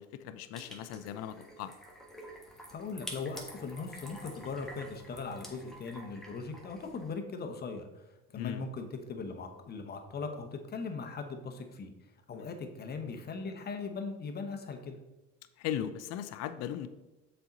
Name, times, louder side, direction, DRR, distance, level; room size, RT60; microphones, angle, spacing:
voice 1, 0.0-1.7 8.4-8.6 12.3-12.5 15.6-16.9, left 10 dB, 60° left, 11 dB, 0.5 m, -38 dB
sound 1, 0.5-7.1, equal, ahead, 1.4 m, -49 dB
voice 2, 2.7-8.0 8.3-11.9 12.3-15.0, left 4 dB, 35° left, 6 dB, 1.0 m, -39 dB
6.8 x 4.4 x 3.9 m, 1.0 s
supercardioid pair, 95°, 29 cm